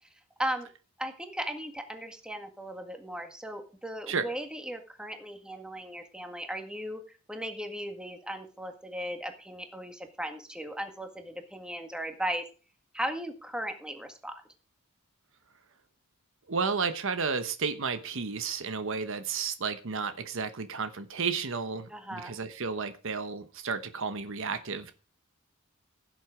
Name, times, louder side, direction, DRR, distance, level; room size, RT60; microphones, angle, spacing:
voice 1, 1.0-7.0 7.3-12.4 12.9-14.4 21.9-22.3, equal, 5° right, 1.8 m, -37 dB
voice 2, 16.5-24.9, right 5 dB, 65° right, 1.1 m, -32 dB
16.0 x 7.6 x 4.9 m
head